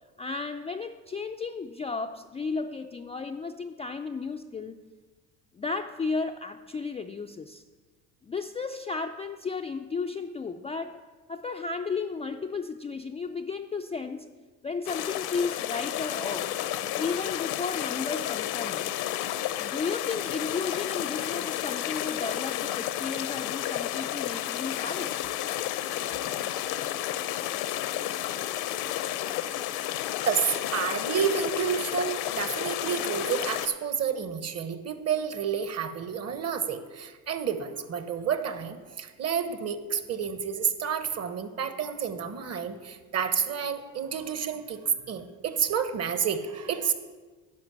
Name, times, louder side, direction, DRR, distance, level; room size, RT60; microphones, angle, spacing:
voice 1, 0.2-4.8 5.5-7.6 8.2-11.0 11.3-14.3 14.6-16.5 17.0-18.8 19.6-25.1, left 4 dB, 15° left, 4 dB, 0.3 m, -34 dB
sound 1, 14.9-33.7, left 13 dB, 70° left, 0.7 m, -31 dB
voice 2, 30.3-44.8 45.1-46.9, right 7 dB, 40° right, 11 dB, 1.0 m, -30 dB
10.5 x 5.3 x 7.4 m, 1.4 s
supercardioid pair, 85°, 40 cm